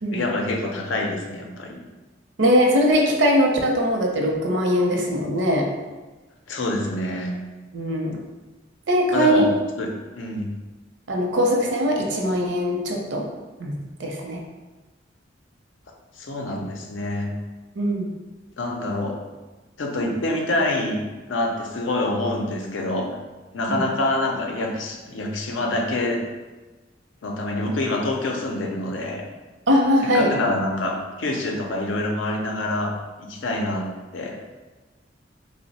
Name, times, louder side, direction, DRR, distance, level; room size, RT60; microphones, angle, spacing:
voice 1, 0.1-1.8 6.5-7.3 9.1-9.5 9.8-9.9 10.1-10.5 16.2-17.3 18.6-19.2 19.8-21.0 21.3-23.1 23.5-26.2 27.2-29.2 30.1-32.9 33.2-33.9 34.1-34.4, left 2 dB, 90° left, 1 dB, 0.5 m, -26 dB
voice 2, 2.4-5.7 7.7-8.2 8.9-9.5 11.1-13.3 13.6-14.4 17.8-18.1 23.7-23.8 29.7-30.3, equal, 70° right, 0 dB, 0.6 m, -21 dB
3.0 x 2.0 x 4.0 m, 1.2 s
head